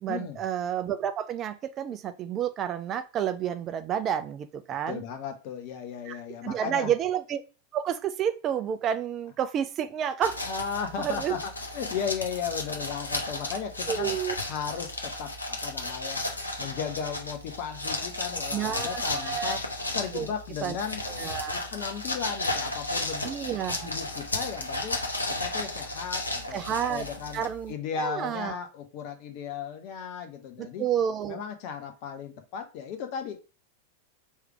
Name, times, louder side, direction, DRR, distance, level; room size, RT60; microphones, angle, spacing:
voice 1, 0.0-5.0 6.1-6.2 6.4-7.4 7.7-10.4 11.0-11.4 13.9-14.3 18.5-19.6 20.1-20.3 20.6-20.8 21.1-21.6 23.2-23.9 26.5-27.1 27.3-28.6 30.6-31.4, right 9 dB, 30° right, 10 dB, 0.4 m, -30 dB
voice 2, 4.9-6.9 10.5-14.1 14.4-16.2 16.6-19.6 19.9-21.0 21.5-23.3 23.8-25.0 25.3-26.6 26.9-27.4 27.7-30.9 31.3-33.4, left 7 dB, 45° left, 6 dB, 0.7 m, -35 dB
sound 1, 10.2-27.7, left 2 dB, 80° left, 0.8 m, -34 dB
3.2 x 3.1 x 4.7 m, 0.34 s
figure-of-eight pair, 90°, 0 cm